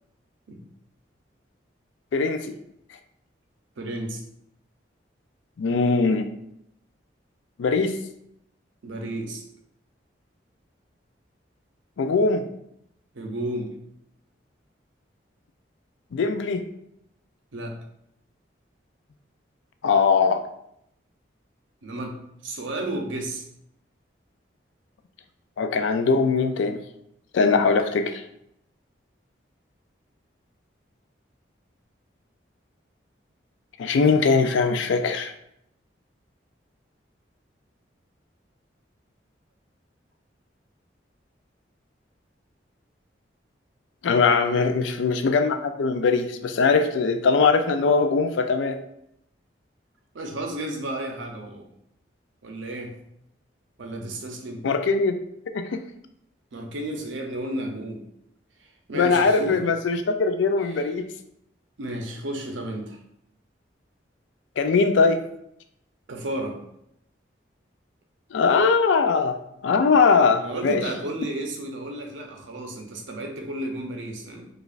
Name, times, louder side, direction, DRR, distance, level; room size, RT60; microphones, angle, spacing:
voice 1, 2.1-2.5 5.6-6.3 7.6-8.0 12.0-12.5 16.1-16.6 19.8-20.4 25.6-26.8 27.3-28.2 33.8-35.3 44.0-48.8 54.6-55.2 55.5-55.8 58.9-61.0 64.6-65.2 68.3-69.4 69.6-70.8, left 4 dB, 80° left, 8 dB, 0.4 m, -21 dB
voice 2, 3.8-4.2 8.8-9.4 13.1-13.7 17.5-17.7 21.8-22.2 22.4-23.4 44.4-44.8 50.1-51.7 52.4-52.9 53.8-54.6 56.5-58.0 58.9-59.6 60.7-60.8 61.8-63.0 66.1-66.6 70.4-74.5, right 1 dB, 85° right, 3 dB, 0.6 m, -32 dB
4.9 x 2.4 x 2.5 m, 0.76 s
head